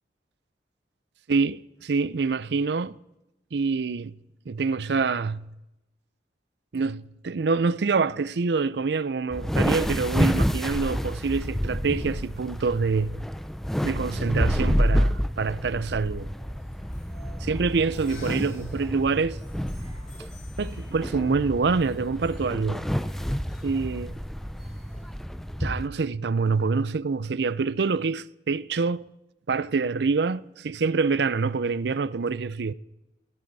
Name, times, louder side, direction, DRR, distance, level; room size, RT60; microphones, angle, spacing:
voice 1, 1.3-3.0 3.5-4.2 4.5-5.5 6.7-13.2 13.8-16.3 17.4-19.4 20.6-22.8 23.6-24.1 25.6-29.1 29.5-32.7, right 4 dB, 70° right, 0.5 m, -26 dB
sound 1, 9.3-25.9, equal, ahead, 0.5 m, -29 dB
sound 2, 16.2-25.7, left 1 dB, 45° left, 7.0 m, -54 dB
19.0 x 16.0 x 4.1 m
head